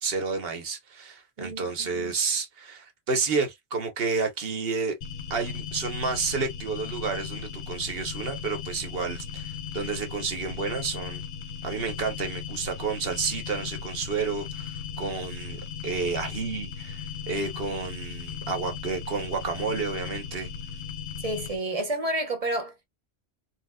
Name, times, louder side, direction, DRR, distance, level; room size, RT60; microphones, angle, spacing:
voice 1, 0.0-5.0 5.3-11.2 11.6-20.5, right 4 dB, 65° right, 1.1 m, -30 dB
voice 2, 1.4-2.1 21.2-22.9, right 1 dB, 35° right, 0.9 m, -30 dB
sound 1, 5.0-21.6, left 7 dB, 85° left, 1.1 m, -37 dB
4.1 x 2.0 x 2.3 m
omnidirectional pair, 1.1 m